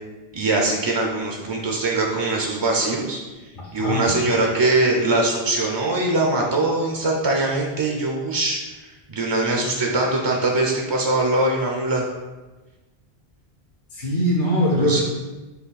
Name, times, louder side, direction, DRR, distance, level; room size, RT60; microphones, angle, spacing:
voice 1, 0.3-3.2 3.7-12.0 14.7-15.0, right 2 dB, 45° right, 0 dB, 0.3 m, -22 dB
voice 2, 3.8-4.2 13.9-15.0, equal, 55° left, -4 dB, 0.9 m, -21 dB
5.5 x 2.3 x 4.0 m, 1.2 s
omnidirectional pair, 1.0 m